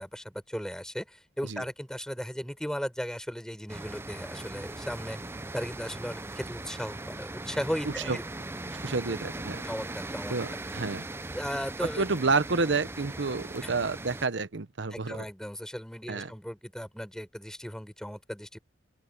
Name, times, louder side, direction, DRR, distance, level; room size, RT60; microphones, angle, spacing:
voice 1, 0.0-5.2 5.5-8.2 9.6-10.6 11.3-12.0 13.6-13.7 14.9-18.6, equal, 5° left, 5.5 m, -36 dB
sound 1, 3.7-14.3, right 2 dB, 15° right, 0.5 m, -39 dB
voice 2, 7.8-8.2 8.7-9.6 10.3-11.1 12.0-15.2 16.1-16.3, right 4 dB, 80° right, 0.9 m, -29 dB
open air
head